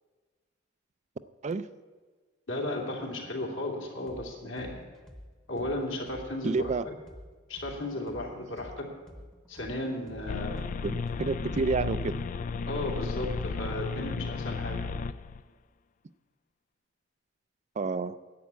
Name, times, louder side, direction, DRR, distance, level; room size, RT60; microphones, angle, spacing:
voice 1, 2.5-4.8 5.5-6.9 7.5-8.9 9.5-10.7 12.6-14.8, left 1 dB, 75° left, -1 dB, 2.8 m, -35 dB
sound 1, 4.1-4.3 4.6-8.3 8.6-12.0, equal, 5° left, 0.9 m, -48 dB
voice 2, 6.4-6.8 10.8-12.1 17.8-18.2, right 4 dB, 35° right, 13 dB, 0.4 m, -29 dB
sound 2, 10.3-15.4, left 4 dB, 40° left, 0.3 m, -33 dB
11.0 x 8.5 x 8.2 m, 1.4 s
head